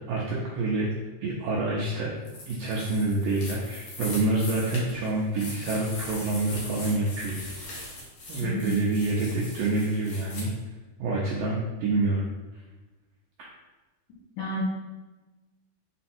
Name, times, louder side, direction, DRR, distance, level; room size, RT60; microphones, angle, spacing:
voice 1, 0.1-0.9 1.2-2.1 2.5-7.4 7.7-7.9 8.3-10.5 11.0-12.3 12.5-12.6, right 2 dB, 80° right, -5 dB, 1.9 m, -27 dB
sound 1, 2.2-10.4, left 1 dB, 55° left, 2.3 m, -40 dB
voice 2, 8.4-8.7 14.4-14.6, left 2 dB, 70° left, -6 dB, 1.9 m, -31 dB
8.3 x 4.1 x 4.4 m, 1.2 s
omnidirectional pair, 5.3 m